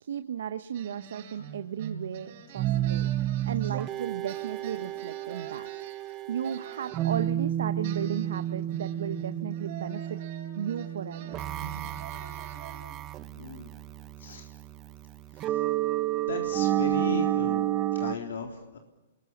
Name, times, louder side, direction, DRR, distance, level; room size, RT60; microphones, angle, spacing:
voice 1, 0.0-3.1 3.5-5.7 6.3-10.2 10.6-11.4, right 9 dB, 75° right, 10 dB, 1.0 m, -35 dB
sound 1, 0.7-4.0 4.3-7.3 7.8-13.1, right 6 dB, 45° right, 7.8 m, -46 dB
sound 2, 2.6-18.1, right 13 dB, 25° right, 0.9 m, -31 dB
voice 2, 13.4-13.7 14.2-14.5 15.4-15.6 16.2-18.8, left 5 dB, 85° left, 3 dB, 3.7 m, -36 dB
29.5 x 22.0 x 7.2 m, 1.0 s
hypercardioid pair, 155°, 0 cm